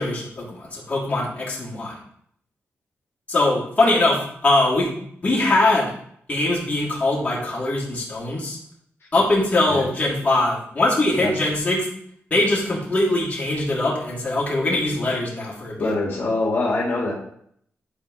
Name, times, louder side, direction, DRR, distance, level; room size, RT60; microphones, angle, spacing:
voice 1, 0.0-2.0 3.3-5.9 6.3-8.6 9.1-11.9 12.3-15.9, left 2 dB, 30° left, -6 dB, 3.1 m, -22 dB
voice 2, 15.8-17.1, left 2 dB, 55° left, -5 dB, 2.1 m, -23 dB
11.5 x 4.8 x 3.2 m, 0.67 s
wide cardioid pair, 115°, 5 cm